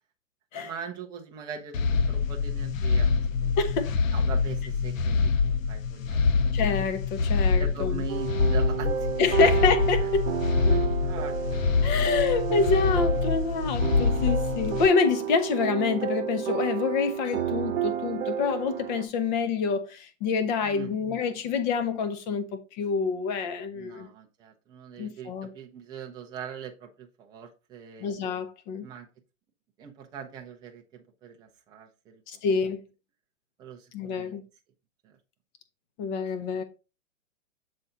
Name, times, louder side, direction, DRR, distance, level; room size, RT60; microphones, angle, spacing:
voice 1, 0.5-3.5 4.1-6.3 7.6-9.1 9.4-9.5 10.0-10.1 10.5-11.6 20.6-21.0 23.7-28.1 28.8-29.1 29.8-32.2 33.6-34.3 35.0-35.2 36.5-36.6, right 7 dB, 10° right, 0.6 m, -42 dB
sound 1, 1.7-14.9, left 5 dB, 70° left, 0.9 m, -25 dB
voice 2, 3.6-3.9 6.5-8.0 9.2-10.3 11.8-24.1 25.0-25.5 28.0-28.9 32.3-32.8 33.9-34.4 36.0-36.6, left 5 dB, 35° left, 1.0 m, -27 dB
sound 2, 8.1-19.0, right 10 dB, 60° right, 1.1 m, -31 dB
6.9 x 4.3 x 3.8 m
hypercardioid pair, 140°, 40 cm